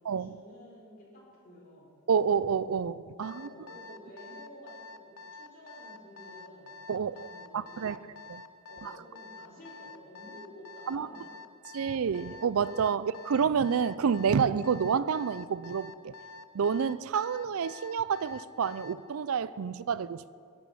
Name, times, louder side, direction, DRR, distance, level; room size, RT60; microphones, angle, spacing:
voice 1, 0.2-1.9 3.2-8.0 8.7-11.3, left 1 dB, 40° left, 4.1 m, -51 dB
voice 2, 2.1-3.5 6.9-7.2 7.5-8.0 8.3-8.4 8.8-8.9 10.9-11.1 11.7-16.1 16.5-20.4, right 6 dB, 70° right, 0.4 m, -29 dB
Alarm, 3.2-19.0, left 3 dB, 75° left, 0.7 m, -47 dB
16.5 x 11.0 x 5.6 m
head